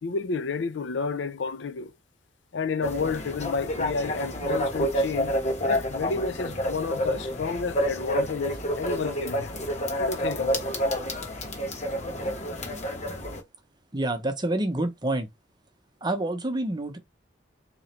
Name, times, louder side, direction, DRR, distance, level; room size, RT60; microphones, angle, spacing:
voice 1, 0.0-1.9 2.5-5.4 5.7-9.6 10.0-10.8, left 4 dB, 80° left, 0.5 m, -31 dB
sound 1, 2.8-13.4, equal, 40° left, 1.2 m, -29 dB
voice 2, 13.9-15.3 16.0-17.0, right 1 dB, 25° right, 0.8 m, -27 dB
3.8 x 3.0 x 4.3 m
head